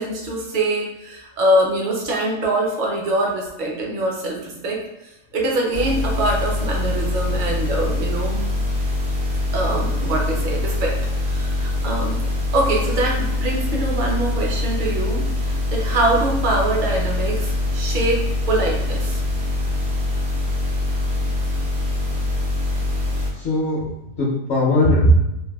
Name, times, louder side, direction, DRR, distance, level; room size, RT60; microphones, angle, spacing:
voice 1, 0.0-4.8 5.3-8.5 9.5-11.0 11.3-12.2 12.5-19.2, right 1 dB, 50° right, -1 dB, 0.6 m, -23 dB
sound 1, 5.7-23.3, left 2 dB, 80° right, 1.1 m, -23 dB
voice 2, 23.3-25.1, left 1 dB, 60° left, -6 dB, 0.8 m, -19 dB
3.3 x 2.2 x 2.2 m, 0.91 s
omnidirectional pair, 1.3 m